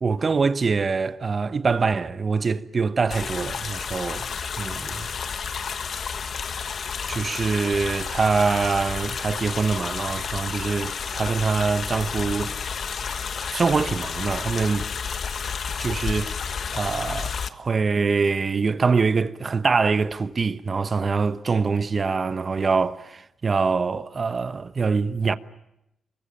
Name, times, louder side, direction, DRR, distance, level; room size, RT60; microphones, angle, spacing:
voice 1, 0.0-4.3 4.6-5.1 7.1-12.5 13.5-14.8 15.8-25.4, right 4 dB, 35° right, 1.1 m, -24 dB
sound 1, 3.1-17.5, left 6 dB, 55° left, 1.3 m, -31 dB
26.0 x 23.0 x 8.7 m
cardioid pair, 110°, 0 cm